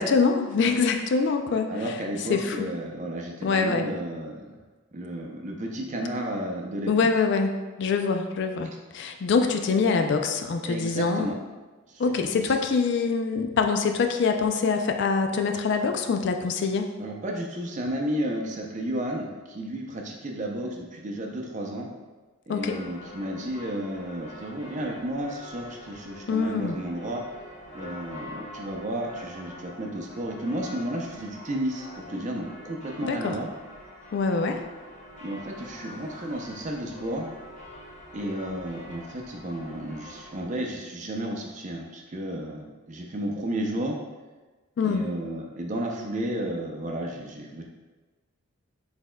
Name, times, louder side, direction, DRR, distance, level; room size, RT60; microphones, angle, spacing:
voice 1, 0.0-2.0 2.3-2.7 3.4-3.9 6.9-11.3 12.0-16.9 22.5-22.8 26.3-26.8 33.0-33.4 34.1-34.6 44.8-45.1, left 4 dB, 55° left, 5 dB, 0.3 m, -24 dB
voice 2, 1.7-4.6 4.9-6.9 10.6-11.4 11.9-12.0 12.3-12.4 17.0-21.9 22.5-27.2 27.7-33.5 35.2-37.3 38.1-44.0 44.8-47.6, right 1 dB, 35° right, 1 dB, 0.5 m, -32 dB
sound 1, 22.6-40.4, left 1 dB, 35° left, 0.9 m, -45 dB
6.2 x 3.5 x 2.2 m, 1.3 s
head